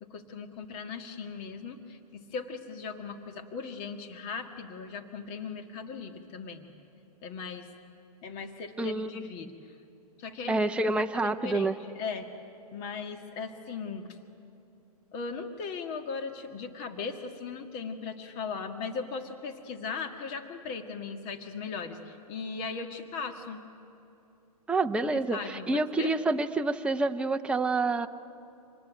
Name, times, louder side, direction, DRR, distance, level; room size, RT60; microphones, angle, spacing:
voice 1, 0.0-6.7 7.2-7.7 8.2-9.7 10.2-12.3 12.7-14.2 15.1-23.6 25.0-26.1, left 5 dB, 35° left, 5 dB, 1.9 m, -38 dB
voice 2, 8.8-9.3 10.5-11.7 24.7-28.1, right 2 dB, 5° right, 6 dB, 0.7 m, -28 dB
26.5 x 20.0 x 9.4 m, 2.9 s
hypercardioid pair, 135°, 20 cm